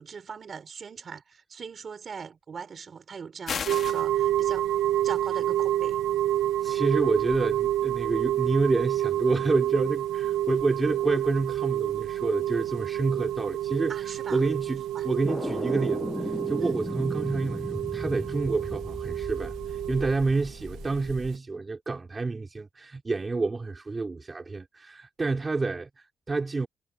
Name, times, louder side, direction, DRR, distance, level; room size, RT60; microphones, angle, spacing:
voice 1, 0.0-4.7 5.0-6.0 13.9-14.5 14.9-15.1 16.6-16.8, right 6 dB, 40° right, 5.6 m, -41 dB
sound 1, 3.5-4.1, left 7 dB, 50° left, 3.6 m, -32 dB
sound 2, 3.7-21.4, right 13 dB, 90° right, 1.1 m, -29 dB
voice 2, 6.6-13.9 14.3-26.7, right 3 dB, 25° right, 3.7 m, -28 dB
sound 3, 15.2-21.3, left 1 dB, 10° left, 1.1 m, -36 dB
cardioid pair, 115°, 0 cm